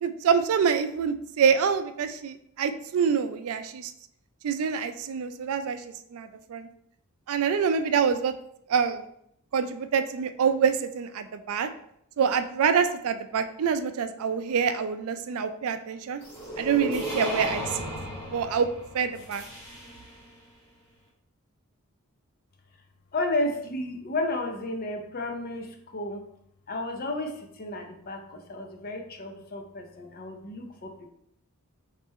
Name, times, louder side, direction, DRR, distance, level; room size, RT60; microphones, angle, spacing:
voice 1, 0.0-3.9 4.4-5.8 6.1-6.7 7.3-8.3 8.7-9.0 9.5-11.7 12.2-16.2 16.6-17.9 18.3-18.7 18.9-19.4, right 6 dB, 70° right, 9 dB, 0.4 m, -26 dB
sound 1, 16.2-20.2, equal, 25° left, 1.5 m, -35 dB
voice 2, 23.1-26.2 26.7-30.9, left 2 dB, 40° left, 4 dB, 0.6 m, -32 dB
3.6 x 3.3 x 4.1 m, 0.73 s
head